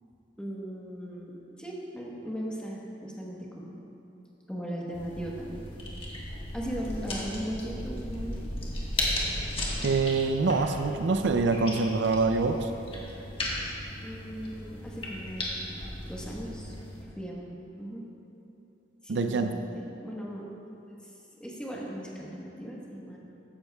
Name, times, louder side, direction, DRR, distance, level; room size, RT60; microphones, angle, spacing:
voice 1, 0.4-3.8 4.5-5.6 6.5-8.5 14.0-15.8 16.1-16.7 17.0-18.0 19.0-20.4 21.0-21.1 21.4-23.2, equal, 5° left, -4 dB, 1.2 m, -38 dB
sound 1, 4.9-17.0, left 1 dB, 30° left, 1.4 m, -36 dB
voice 2, 9.8-12.7 19.1-19.5, right 3 dB, 70° right, 7 dB, 0.4 m, -25 dB
14.5 x 10.5 x 2.3 m, 2.9 s
head